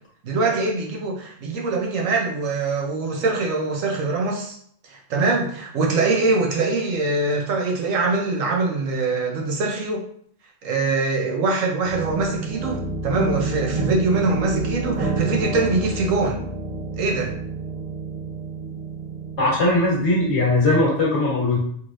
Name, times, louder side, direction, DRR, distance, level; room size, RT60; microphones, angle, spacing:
voice 1, 0.2-4.6 4.9-10.0 10.6-12.8 13.0-16.4 17.0-17.3, right 3 dB, 90° right, 0 dB, 1.2 m, -23 dB
sound 1, 11.8-20.3, right 3 dB, 30° right, 0.8 m, -29 dB
voice 2, 19.4-21.6, left 2 dB, 60° left, -5 dB, 1.6 m, -19 dB
4.1 x 3.0 x 2.6 m, 0.62 s
omnidirectional pair, 1.3 m